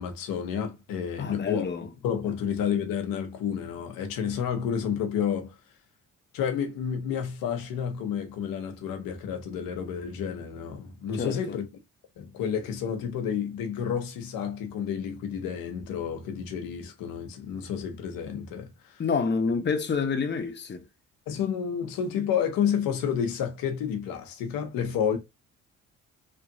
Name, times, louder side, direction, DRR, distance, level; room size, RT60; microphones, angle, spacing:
voice 1, 0.0-1.7 2.0-5.5 6.3-11.7 12.2-19.0 21.3-25.2, left 8 dB, 80° left, 0.8 m, -30 dB
voice 2, 1.2-1.9 11.1-11.6 19.0-20.8, left 5 dB, 30° left, 0.8 m, -28 dB
3.0 x 2.5 x 2.6 m
supercardioid pair, 55°, 34 cm